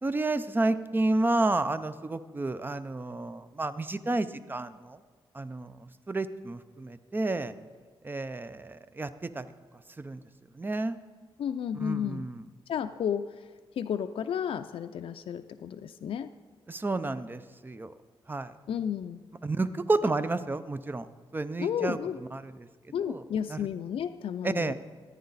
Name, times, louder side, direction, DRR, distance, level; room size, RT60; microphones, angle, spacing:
voice 1, 0.0-5.0 5.3-7.5 8.0-9.5 10.0-10.2 10.5-11.0 11.8-12.4 16.7-17.9 18.3-18.5 19.4-21.1 21.3-22.0 22.3-22.5 23.1-23.2 23.5-23.7 24.4-24.7, right 2 dB, 20° right, 13 dB, 0.5 m, -30 dB
voice 2, 11.4-12.3 12.7-13.5 13.8-16.3 18.7-19.2 20.0-20.1 21.6-22.2 22.9-24.7, left 8 dB, 70° left, 8 dB, 0.3 m, -32 dB
14.5 x 9.5 x 4.0 m, 1.5 s
wide cardioid pair, 110°, 10 cm